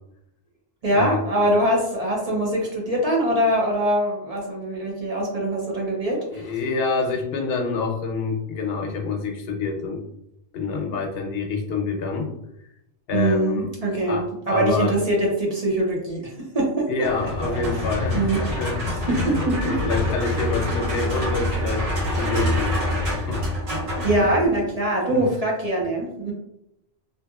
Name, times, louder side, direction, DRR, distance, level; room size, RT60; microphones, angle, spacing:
voice 1, 0.8-6.5 13.1-16.9 17.5-17.8 18.1-18.4 19.1-19.8 20.2-20.3 24.0-26.3, right 1 dB, 45° right, -3 dB, 0.7 m, -23 dB
voice 2, 6.2-10.0 10.5-12.3 13.1-13.7 14.1-15.0 16.9-23.5 24.1-24.3 25.1-25.3, left 4 dB, 75° left, 2 dB, 0.8 m, -27 dB
sound 1, 17.0-24.6, equal, 80° right, 1.3 m, -26 dB
2.7 x 2.6 x 2.3 m, 0.80 s
omnidirectional pair, 1.1 m